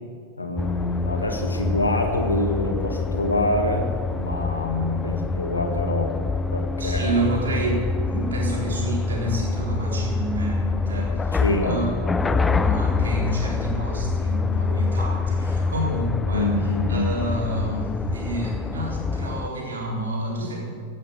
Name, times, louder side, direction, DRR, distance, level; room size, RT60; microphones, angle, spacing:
voice 1, 0.4-6.1 6.5-7.2 11.4-11.8 16.3-17.1, left 1 dB, 80° left, 3 dB, 1.8 m, -25 dB
sound 1, 0.6-19.5, left 4 dB, 15° left, 0.4 m, -26 dB
voice 2, 6.8-11.9 12.1-20.6, right 1 dB, 70° right, -2 dB, 4.0 m, -28 dB
sound 2, 9.1-13.7 14.1-14.2, equal, 30° right, 3.7 m, -50 dB
16.5 x 7.8 x 8.3 m, 2.1 s
figure-of-eight pair, 90°, 0 cm